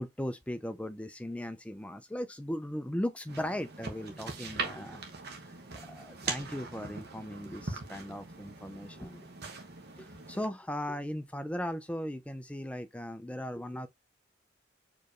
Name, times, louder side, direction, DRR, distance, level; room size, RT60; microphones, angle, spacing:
voice 1, 0.0-5.0 5.9-9.3 10.0-13.9, left 1 dB, 5° left, 0.4 m, -37 dB
sound 1, 3.3-10.5, right 4 dB, 50° right, 1.0 m, -41 dB
4.5 x 3.1 x 3.0 m
head